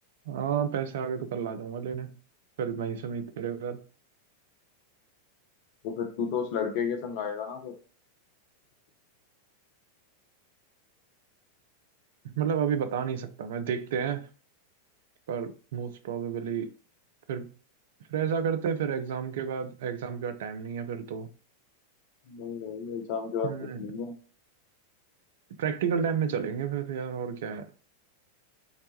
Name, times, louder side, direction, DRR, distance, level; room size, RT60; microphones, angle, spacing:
voice 1, 0.3-2.2 2.6-3.8 12.2-14.3 15.3-16.7 17.3-17.5 18.1-21.3 23.4-23.8 25.6-27.7, right 7 dB, 55° right, 0.3 m, -31 dB
voice 2, 5.8-7.7 22.3-23.5 23.8-24.1, left 6 dB, 45° left, 0.4 m, -32 dB
2.9 x 2.1 x 2.9 m
figure-of-eight pair, 90°, 0 cm